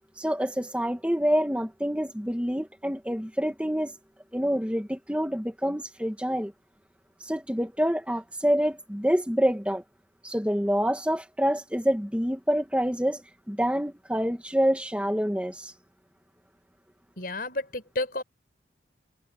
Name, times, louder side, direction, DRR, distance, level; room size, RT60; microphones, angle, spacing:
voice 1, 0.2-3.9 4.3-6.5 7.3-9.8 10.2-13.2 13.5-15.7, equal, 5° right, 2.1 m, -27 dB
voice 2, 17.2-18.2, left 2 dB, 50° left, 5.8 m, -31 dB
head